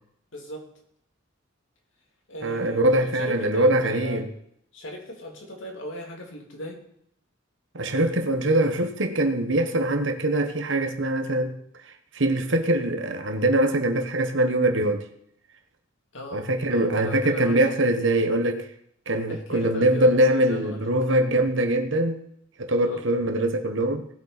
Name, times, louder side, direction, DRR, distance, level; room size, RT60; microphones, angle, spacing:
voice 1, 0.3-0.6 2.3-4.2 4.7-6.8 16.1-17.7 19.3-20.8 22.8-23.0, equal, 65° left, 3.2 m, -38 dB
voice 2, 2.4-4.3 7.7-11.6 12.1-15.1 16.3-18.7 19.1-22.2 22.6-24.1, right 1 dB, 65° right, 1.4 m, -23 dB
19.0 x 8.2 x 4.3 m
head